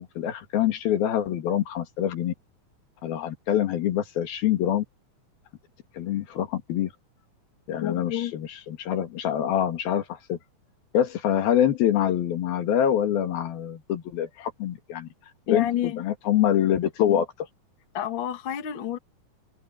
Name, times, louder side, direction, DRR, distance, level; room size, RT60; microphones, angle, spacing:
voice 1, 0.0-2.3 3.0-4.8 6.0-6.9 7.7-10.4 10.9-15.1 15.5-17.3, left 10 dB, 85° left, 3.9 m, -25 dB
voice 2, 7.8-8.3 15.5-16.0 17.0-17.2 17.9-19.0, left 11 dB, 45° left, 1.7 m, -29 dB
omnidirectional pair, 4.1 m